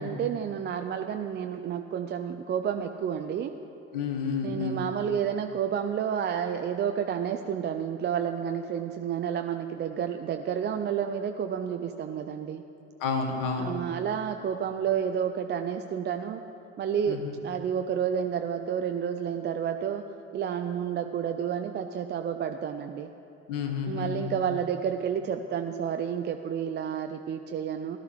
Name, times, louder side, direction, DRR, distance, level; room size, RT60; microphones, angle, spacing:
voice 1, 0.0-3.5 4.4-12.6 13.6-16.4 16.8-20.1 20.3-23.1 23.9-28.0, right 8 dB, 30° right, 6 dB, 0.5 m, -30 dB
voice 2, 3.9-4.8 13.0-13.7 17.1-17.3 23.5-24.6, left 5 dB, 55° left, 4 dB, 1.5 m, -31 dB
16.5 x 11.5 x 3.3 m, 2.8 s
figure-of-eight pair, 55°, 38 cm